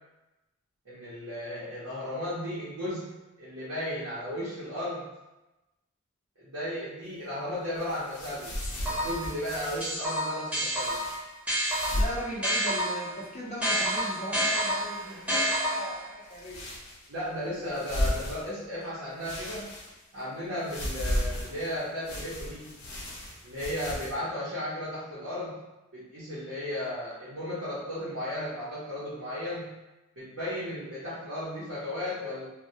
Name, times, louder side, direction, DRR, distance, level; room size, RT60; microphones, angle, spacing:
voice 1, 0.9-5.1 6.4-8.6 8.9-11.0 17.1-19.7 20.1-22.7 23.4-25.6 25.9-29.7 30.2-32.5, left 1 dB, 75° right, -10 dB, 0.7 m, -35 dB
sound 1, 7.7-9.9 10.7-11.2 11.6-12.2 12.5-12.6 13.1-13.7 14.8-15.4 16.3-17.2 17.7-18.8 19.2-20.2 20.6-24.1, left 1 dB, 80° left, 0.7 m, -35 dB
sound 2, 8.6-9.3 9.8-13.1 13.6-16.1, equal, 5° right, 0.8 m, -29 dB
voice 2, 11.9-16.6, right 1 dB, 30° left, -6 dB, 0.5 m, -38 dB
2.2 x 2.1 x 2.7 m, 1.0 s
head